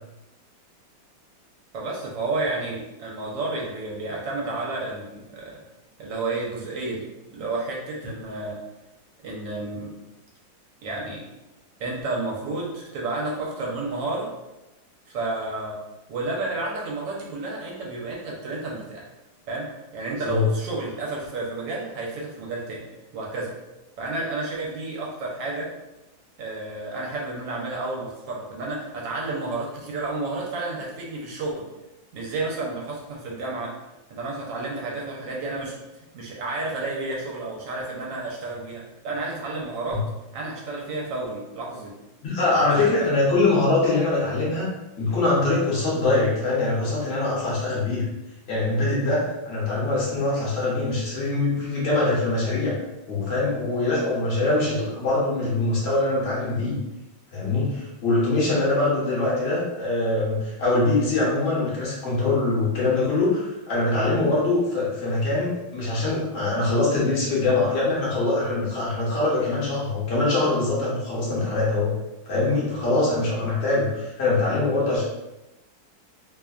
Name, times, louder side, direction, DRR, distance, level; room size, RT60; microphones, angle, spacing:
voice 1, 1.7-5.6 6.0-8.6 9.2-10.0 10.8-11.2 11.8-14.3 15.1-15.8 16.1-19.1 19.5-22.8 23.1-23.5 24.0-25.7 26.4-31.7 32.1-33.7 34.1-35.8 36.1-40.0 40.3-41.9 42.4-43.1, right 2 dB, 75° right, -3 dB, 1.3 m, -31 dB
voice 2, 20.1-20.5 39.9-40.0 42.2-44.7 45.0-48.1 48.5-52.7 53.1-56.8 57.3-71.9 72.3-75.0, left 2 dB, 50° left, -6 dB, 0.8 m, -23 dB
3.1 x 2.1 x 2.4 m, 0.98 s
omnidirectional pair, 2.1 m